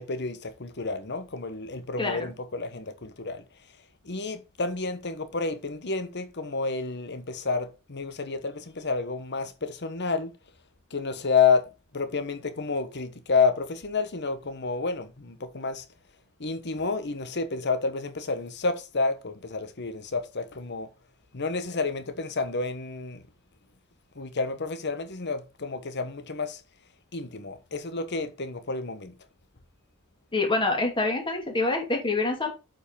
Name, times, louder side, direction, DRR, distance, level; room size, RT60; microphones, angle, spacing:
voice 1, 0.0-3.4 4.0-10.3 10.9-11.7 11.9-15.8 16.4-20.9 21.3-23.2 24.2-26.6 27.1-29.1, left 4 dB, 50° left, 1.2 m, -29 dB
voice 2, 2.0-2.3 30.3-32.5, left 3 dB, 20° left, 2.5 m, -26 dB
8.0 x 5.1 x 5.3 m
head